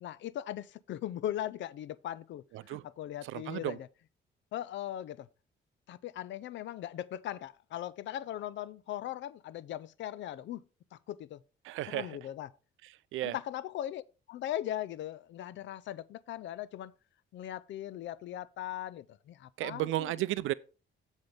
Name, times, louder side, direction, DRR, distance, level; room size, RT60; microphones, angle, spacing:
voice 1, 0.0-3.9 4.5-5.3 5.9-10.6 10.9-11.4 11.9-12.5 13.2-14.0 14.3-16.9 17.3-20.1, left 12 dB, 70° left, 0.5 m, -39 dB
voice 2, 3.2-3.8 11.6-12.1 13.1-13.3 19.6-20.5, right 15 dB, 85° right, 0.5 m, -33 dB
7.7 x 7.3 x 3.4 m
cardioid pair, 90°, 20 cm